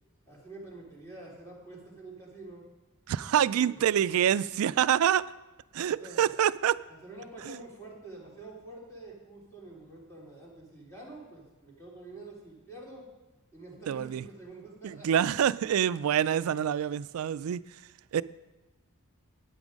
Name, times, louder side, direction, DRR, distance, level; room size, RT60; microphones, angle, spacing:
voice 1, 0.3-2.6 3.4-3.8 5.9-6.3 7.0-13.0 13.5-15.1, right 2 dB, 15° left, 3.4 m, -47 dB
voice 2, 3.1-5.3 5.7-6.8 7.5-7.6 13.9-14.2 14.8-17.6 18.1-18.2, right 9 dB, 75° right, 0.3 m, -26 dB
9.6 x 9.5 x 5.2 m
head